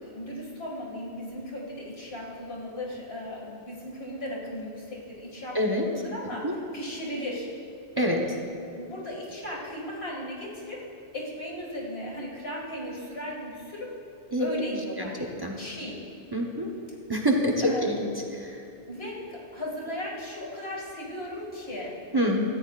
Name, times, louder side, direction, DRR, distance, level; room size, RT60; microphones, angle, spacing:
voice 1, 0.0-7.5 8.7-10.8 11.1-13.9 14.4-15.3 15.6-16.0 17.6-17.9 18.9-22.0, left 1 dB, 80° left, -3 dB, 2.5 m, -36 dB
voice 2, 16.3-16.7 17.1-18.0 18.4-18.5 22.1-22.4, equal, 25° right, 0 dB, 1.0 m, -25 dB
17.5 x 13.5 x 2.5 m, 2.6 s
omnidirectional pair, 1.0 m